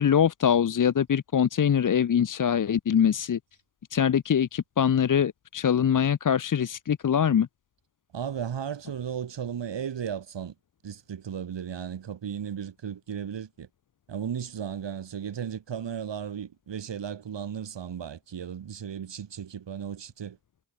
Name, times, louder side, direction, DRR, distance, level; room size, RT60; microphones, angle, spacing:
voice 1, 0.0-3.4 3.9-7.5, left 8 dB, 40° left, 1.1 m, -23 dB
voice 2, 8.1-10.5 10.8-13.7 14.1-20.4, right 8 dB, 60° right, 7.5 m, -35 dB
hypercardioid pair, 45°, 49 cm